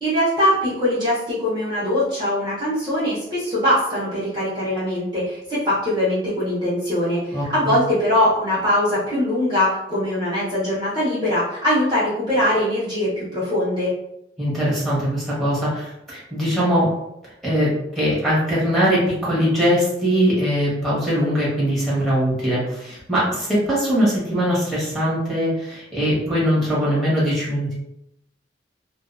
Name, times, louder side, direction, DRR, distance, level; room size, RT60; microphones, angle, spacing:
voice 1, 0.0-13.9, left 1 dB, 25° right, -9 dB, 0.8 m, -22 dB
voice 2, 7.3-7.8 14.4-16.9 17.4-27.7, equal, ahead, -9 dB, 1.1 m, -21 dB
2.4 x 2.2 x 2.5 m, 0.81 s
head